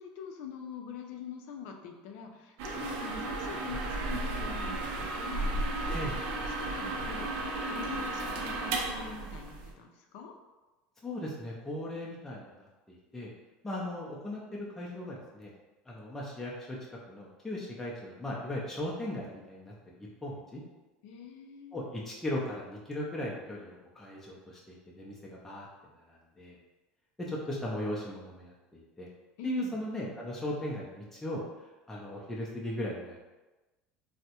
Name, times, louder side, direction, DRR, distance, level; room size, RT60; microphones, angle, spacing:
voice 1, 0.0-6.0 6.3-10.3 21.0-21.8 29.4-29.8, left 6 dB, 70° left, 3 dB, 0.4 m, -45 dB
sound 1, 2.6-9.7, right 2 dB, 70° right, 0.5 m, -34 dB
voice 2, 11.0-12.5 12.9-13.3 13.6-15.5 15.9-16.8 17.1-20.6 21.7-25.7 26.1-26.6 27.2-29.1 29.4-31.4 31.9-33.2, left 1 dB, 10° left, -4 dB, 0.4 m, -37 dB
3.4 x 2.0 x 2.8 m, 1.2 s
cardioid pair, 150°, 4 cm